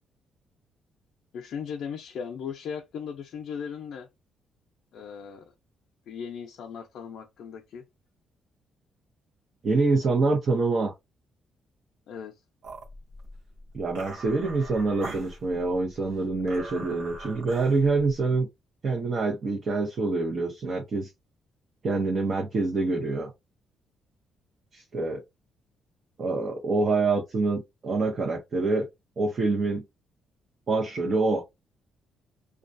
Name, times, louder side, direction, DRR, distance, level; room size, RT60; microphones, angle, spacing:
voice 1, 1.3-4.1 4.9-5.5 6.1-7.8 12.1-12.3, left 7 dB, 70° left, 0.5 m, -37 dB
voice 2, 9.6-10.9 13.7-18.5 18.8-21.1 21.8-23.3 24.7-25.2 26.2-28.9 29.2-29.8 30.7-31.4, right 3 dB, 50° right, 0.7 m, -26 dB
sound 1, 12.6-18.4, right 2 dB, 90° right, 0.8 m, -42 dB
2.3 x 2.2 x 2.5 m
cardioid pair, 90°, 0 cm